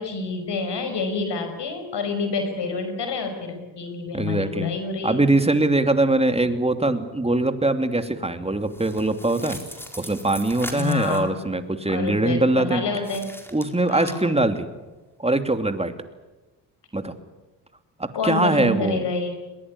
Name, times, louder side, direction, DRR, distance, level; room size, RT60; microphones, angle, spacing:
voice 1, 0.0-5.2 10.7-11.3 11.9-13.3 13.9-14.3 18.1-19.3, left 4 dB, 55° left, 7 dB, 5.6 m, -28 dB
voice 2, 4.1-4.7 5.0-9.6 10.0-12.8 13.5-14.7 15.2-15.9 16.9-17.1 18.0-19.0, right 2 dB, 10° right, 8 dB, 2.8 m, -22 dB
sound 1, 8.6-11.3 13.0-14.1, equal, 5° left, 4.4 m, -39 dB
22.0 x 20.5 x 9.8 m, 1.2 s
hypercardioid pair, 50°, 50 cm